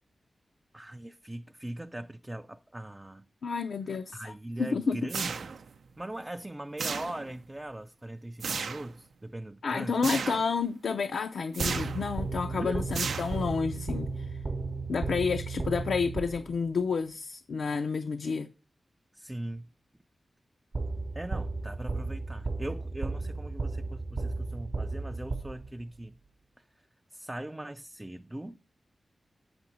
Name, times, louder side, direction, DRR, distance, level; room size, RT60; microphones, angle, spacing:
voice 1, 0.7-3.3 4.1-5.5 6.0-10.0 12.5-12.9 19.1-19.7 21.2-26.2 26.6-26.7 27.1-28.6, right 1 dB, 15° right, 0.3 m, -40 dB
voice 2, 3.4-4.3 4.6-5.0 9.6-14.4 14.9-18.5, left 5 dB, 80° left, 0.5 m, -30 dB
sound 1, 5.1-5.8 6.8-7.4 8.4-8.9 10.0-10.5 11.5-12.1 12.9-13.6, right 5 dB, 85° right, 0.5 m, -34 dB
sound 2, 11.6-16.7 20.7-26.0, right 3 dB, 40° right, 0.7 m, -34 dB
8.5 x 6.9 x 4.0 m
wide cardioid pair, 150°, 0 cm